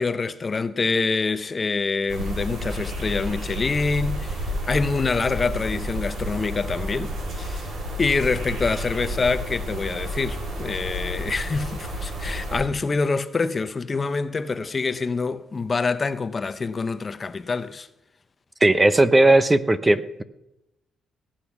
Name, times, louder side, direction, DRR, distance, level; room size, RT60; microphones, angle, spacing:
voice 1, 0.0-7.7 8.0-17.9, left 4 dB, 35° left, 0.8 m, -26 dB
sound 1, 2.1-12.6, equal, 70° right, 4.8 m, -31 dB
voice 2, 18.6-20.2, right 2 dB, 20° right, 0.8 m, -17 dB
18.5 x 9.1 x 6.1 m
cardioid pair, 90°, 0 cm